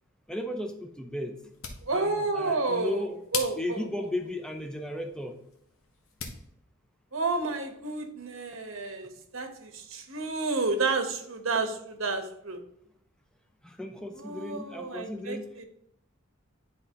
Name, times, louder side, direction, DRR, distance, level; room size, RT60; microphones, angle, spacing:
voice 1, 0.3-1.4 1.9-3.2 3.5-5.4 13.6-15.5, left 1 dB, 5° left, 5 dB, 0.5 m, -35 dB
sound 1, 1.3-6.5, left 6 dB, 80° left, 1.0 m, -42 dB
voice 2, 1.8-3.1 3.3-3.8 7.1-12.6 14.2-15.6, right 3 dB, 80° right, 6 dB, 1.1 m, -30 dB
9.9 x 4.0 x 2.9 m, 0.73 s
head